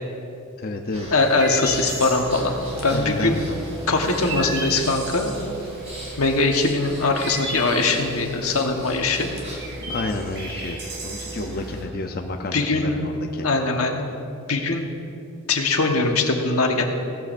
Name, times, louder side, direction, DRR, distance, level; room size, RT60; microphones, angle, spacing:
voice 1, 0.6-1.1 2.9-4.2 9.9-13.5, left 2 dB, 45° left, 3 dB, 0.6 m, -31 dB
Breathing, 0.9-9.7, right 1 dB, 30° right, 2.8 m, -40 dB
voice 2, 1.1-2.5 2.8-3.4 3.9-5.3 6.2-9.3 12.5-13.0 13.4-14.1 14.5-14.9 15.5-16.8, left 3 dB, 90° left, 3 dB, 1.3 m, -21 dB
Chirp tweet, 1.2-11.8, right 2 dB, 55° right, 3.0 m, -36 dB
sound 1, 1.6-11.9, right 1 dB, ahead, 2.3 m, -39 dB
16.5 x 13.5 x 2.6 m, 2.7 s
head